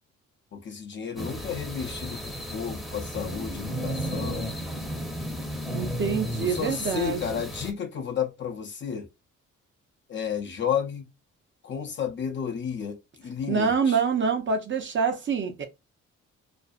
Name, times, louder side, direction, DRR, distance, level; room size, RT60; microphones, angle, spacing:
voice 1, 0.5-4.5 6.4-9.1 10.1-11.1 11.6-14.0, left 7 dB, 40° left, 0.5 m, -32 dB
sound 1, 1.1-7.7, equal, ahead, 0.7 m, -34 dB
voice 2, 5.7-7.4 13.5-15.7, right 5 dB, 40° right, 0.6 m, -26 dB
2.5 x 2.0 x 2.4 m
cardioid pair, 90°, 30 cm